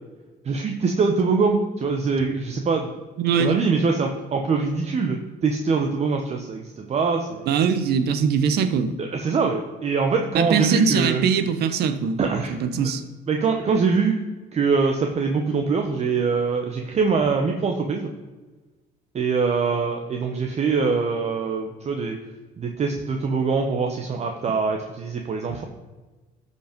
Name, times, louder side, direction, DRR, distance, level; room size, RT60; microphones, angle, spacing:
voice 1, 0.4-3.0 3.4-7.5 9.0-11.3 12.2-12.9 13.3-14.2 14.5-18.1 19.1-22.2 22.6-25.6, right 4 dB, 40° right, 3 dB, 1.0 m, -23 dB
voice 2, 3.2-3.5 7.5-9.0 10.3-12.2 12.5-13.0, right 6 dB, 70° right, 10 dB, 1.0 m, -21 dB
13.0 x 5.5 x 5.2 m, 1.2 s
cardioid pair, 110°, 17 cm